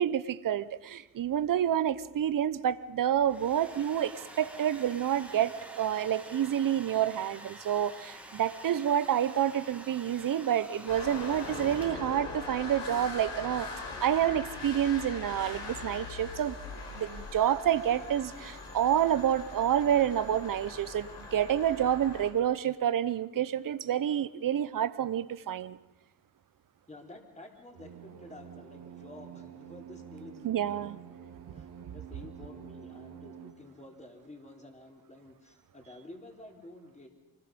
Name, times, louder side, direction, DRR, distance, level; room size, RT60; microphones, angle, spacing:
voice 1, 0.0-13.7 14.0-16.6 16.9-25.8 30.4-31.0, right 10 dB, 50° right, 15 dB, 1.0 m, -28 dB
Domestic sounds home sounds, 3.0-12.2, right 1 dB, 5° right, 2.3 m, -48 dB
sound 1, 10.9-22.3, left 3 dB, 85° left, 5.1 m, -41 dB
voice 2, 26.9-31.0 31.5-37.1, left 2 dB, 15° left, 2 dB, 3.3 m, -50 dB
sound 2, 27.7-33.5, right 8 dB, 85° right, 2.7 m, -48 dB
24.5 x 20.0 x 5.3 m, 1.0 s
cardioid pair, 85°, 41 cm